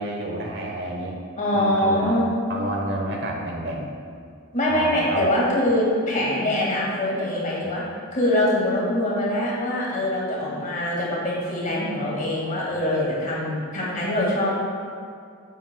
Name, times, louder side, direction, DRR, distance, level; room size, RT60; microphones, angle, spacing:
voice 1, 0.0-1.2 1.5-2.2 2.5-3.9 4.7-5.3 12.7-12.9, right 1 dB, 55° right, 0 dB, 1.0 m, -29 dB
voice 2, 1.4-2.3 4.5-7.8 8.1-14.5, left 1 dB, 35° left, -5 dB, 1.8 m, -23 dB
10.0 x 7.9 x 2.2 m, 2.2 s
head